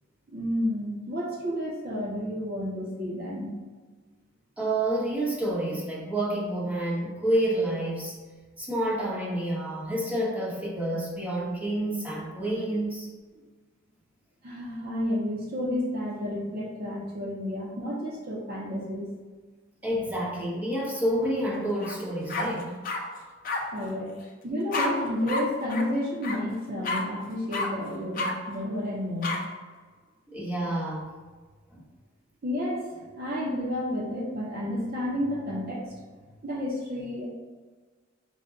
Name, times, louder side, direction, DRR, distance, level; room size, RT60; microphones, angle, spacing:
voice 1, 0.3-3.5 14.4-19.1 23.7-24.1 24.4-29.4 32.4-36.0 36.4-37.3, left 1 dB, 55° right, -2 dB, 0.7 m, -31 dB
voice 2, 4.6-8.1 8.6-13.1 19.8-22.7 30.3-31.1 31.7-31.8, right 1 dB, 10° right, -7 dB, 1.0 m, -29 dB
sound 1, 21.8-22.0 22.3-23.0 23.4-23.6 24.7-24.9 25.3-25.4 25.7-25.8 26.2-26.4 26.8-27.0 27.5-27.7 28.1-28.3 29.2-29.4, left 3 dB, 50° left, 0.5 m, -29 dB
5.0 x 2.2 x 3.7 m, 1.4 s
head